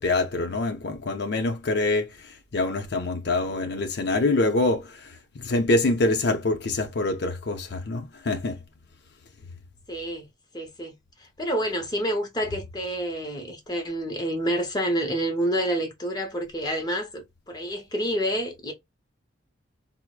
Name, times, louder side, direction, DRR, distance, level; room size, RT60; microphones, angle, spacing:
voice 1, 0.0-8.6, left 2 dB, 60° left, 0.6 m, -25 dB
voice 2, 9.9-10.3 10.5-10.9 11.4-18.7, right 1 dB, 20° left, 0.7 m, -28 dB
4.5 x 2.0 x 2.3 m
head